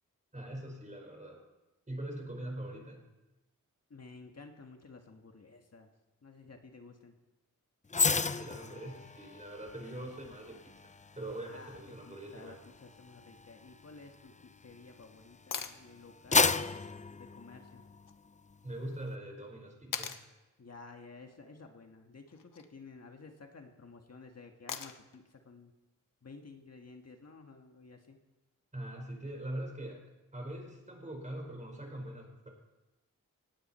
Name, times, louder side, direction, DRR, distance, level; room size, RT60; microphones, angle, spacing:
voice 1, 0.3-1.4 1.9-3.0 8.1-12.6 18.6-20.1 28.7-30.0 30.3-32.5, right 1 dB, 25° right, 1 dB, 4.9 m, -42 dB
voice 2, 3.9-5.9 6.2-7.1 11.4-17.8 20.6-25.7 26.2-28.2, left 4 dB, 50° left, 4 dB, 1.7 m, -53 dB
sound 1, 7.9-15.3 15.8-18.1 18.5-18.7, left 4 dB, 25° left, 0.5 m, -34 dB
sound 2, 15.5-15.8 18.1-18.2 19.9-20.3 22.3-22.7 24.7-25.2 27.3-27.4, left 7 dB, 90° left, 1.1 m, -40 dB
18.5 x 17.0 x 4.4 m, 1.1 s
wide cardioid pair, 90°, 32 cm